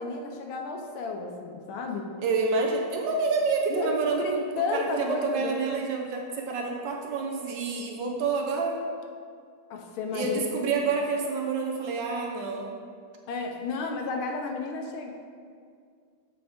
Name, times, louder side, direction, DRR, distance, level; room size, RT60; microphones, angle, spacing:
voice 1, 0.0-2.1 3.7-5.5 9.7-10.4 13.3-15.1, left 3 dB, 80° left, 3 dB, 1.5 m, -32 dB
voice 2, 2.2-4.4 4.7-8.8 10.1-12.7, right 4 dB, 70° right, 1 dB, 1.3 m, -28 dB
7.7 x 4.7 x 3.5 m, 2.2 s
omnidirectional pair, 2.3 m